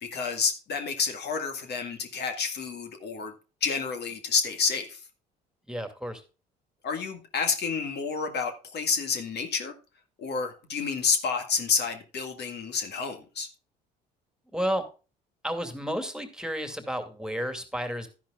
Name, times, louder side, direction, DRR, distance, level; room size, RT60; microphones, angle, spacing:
voice 1, 0.0-3.3 3.6-5.0 6.8-9.7 10.2-13.5, left 5 dB, 55° left, 2.0 m, -29 dB
voice 2, 5.7-6.2 14.5-14.8 15.4-18.1, equal, 5° right, 2.4 m, -31 dB
12.5 x 10.5 x 2.4 m
hypercardioid pair, 65°, 20 cm